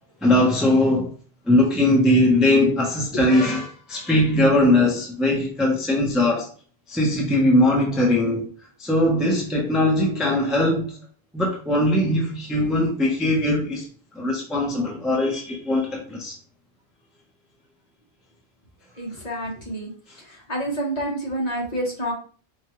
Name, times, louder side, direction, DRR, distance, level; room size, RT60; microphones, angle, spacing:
voice 1, 0.2-1.1 1.5-6.5 6.9-8.5 8.8-11.0 11.3-13.8 14.1-16.3, left 1 dB, ahead, 0.7 m, -20 dB
voice 2, 19.0-19.9 20.5-22.1, right 1 dB, 40° left, 1.3 m, -28 dB
4.5 x 2.4 x 3.0 m
omnidirectional pair, 1.1 m